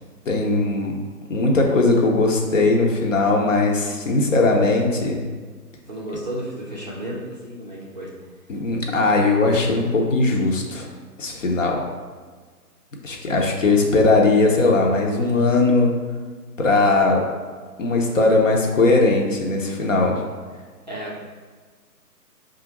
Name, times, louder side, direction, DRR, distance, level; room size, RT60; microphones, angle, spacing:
voice 1, 0.3-1.0 1.3-5.2 8.5-10.9 11.2-11.8 13.0-15.9 16.6-17.2 17.8-20.2, left 3 dB, 50° left, 0 dB, 0.8 m, -19 dB
voice 2, 5.9-8.1 20.9-21.3, right 1 dB, 30° right, -6 dB, 0.5 m, -33 dB
4.8 x 2.5 x 2.9 m, 1.5 s
figure-of-eight pair, 145°, 48 cm